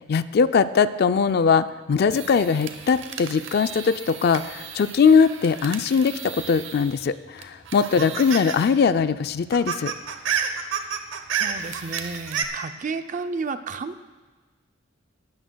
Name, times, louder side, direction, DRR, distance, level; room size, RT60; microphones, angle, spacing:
voice 1, 0.1-9.9, left 6 dB, 50° left, 13 dB, 0.3 m, -21 dB
sound 1, 2.1-7.0 7.4-8.7 9.0-9.1 9.4-12.4, right 7 dB, 65° right, 0.9 m, -32 dB
voice 2, 11.3-14.0, right 4 dB, 40° right, 10 dB, 0.4 m, -32 dB
18.5 x 12.5 x 2.3 m, 1.4 s
head